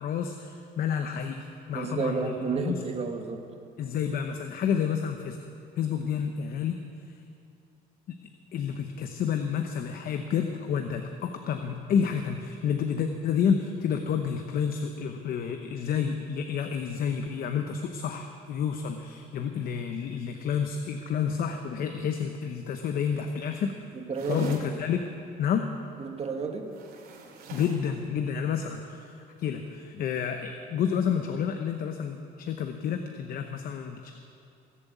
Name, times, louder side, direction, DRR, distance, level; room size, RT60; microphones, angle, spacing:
voice 1, 0.0-1.4 1.7-2.3 2.7-2.8 3.8-5.4 5.8-6.8 8.1-8.2 8.5-23.8 24.3-25.1 25.4-25.7 27.5-34.1, left 7 dB, 60° left, 6 dB, 0.8 m, -29 dB
voice 2, 1.7-3.4 23.9-24.6 26.0-26.7, right 4 dB, 35° right, 4 dB, 1.7 m, -31 dB
sound 1, 24.1-24.7 26.7-27.9, right 3 dB, 65° right, 2.6 m, -45 dB
17.5 x 7.5 x 8.1 m, 2.6 s
cardioid pair, 110°, 17 cm